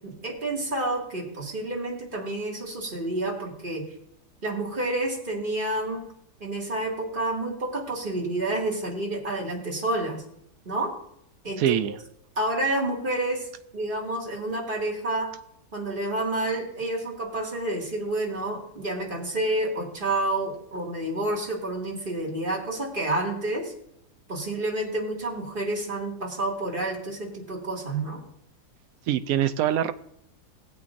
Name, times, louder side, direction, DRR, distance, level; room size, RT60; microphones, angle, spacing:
voice 1, 0.0-3.8 4.4-6.1 6.4-10.2 10.7-10.9 11.4-11.8 12.4-13.5 13.7-15.3 15.7-23.7 24.3-28.2, right 2 dB, 30° right, -1 dB, 2.2 m, -29 dB
voice 2, 11.6-12.0 29.1-29.9, right 11 dB, 70° right, 11 dB, 0.9 m, -24 dB
16.5 x 8.4 x 2.5 m, 0.73 s
omnidirectional pair, 1.7 m